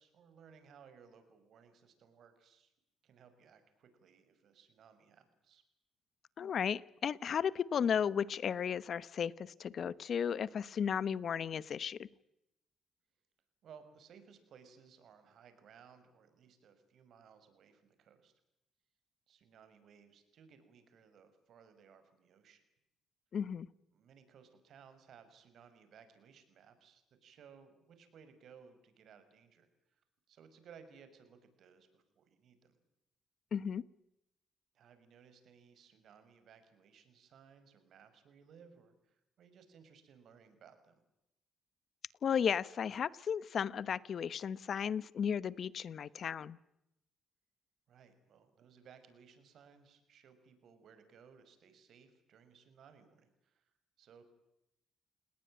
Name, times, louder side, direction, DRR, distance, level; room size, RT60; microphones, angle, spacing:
voice 1, 0.0-2.7 3.0-5.6 13.6-18.3 19.3-22.6 23.9-30.0 30.3-32.8 34.7-41.0 47.9-53.7 54.0-54.2, right 7 dB, 70° right, 10 dB, 6.0 m, -61 dB
voice 2, 6.4-12.1 23.3-23.7 33.5-33.8 42.2-46.6, left 7 dB, 55° left, 19 dB, 1.0 m, -34 dB
29.5 x 19.5 x 8.9 m, 0.87 s
cardioid pair, 90°, 0 cm